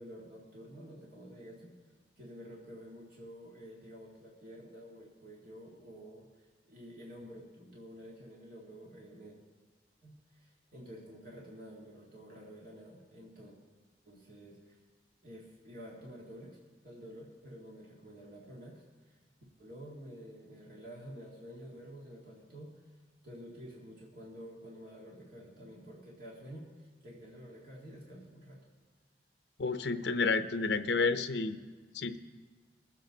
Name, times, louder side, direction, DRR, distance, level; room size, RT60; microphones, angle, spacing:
voice 1, 0.0-1.7 2.2-9.4 10.0-13.6 14.1-14.8 15.2-16.6 16.8-19.2 19.6-23.0 23.2-28.6, equal, 55° right, -4 dB, 2.0 m, -50 dB
voice 2, 29.6-31.6 31.9-32.2, left 4 dB, 75° left, 9 dB, 0.7 m, -30 dB
21.5 x 7.8 x 3.9 m, 1.4 s
head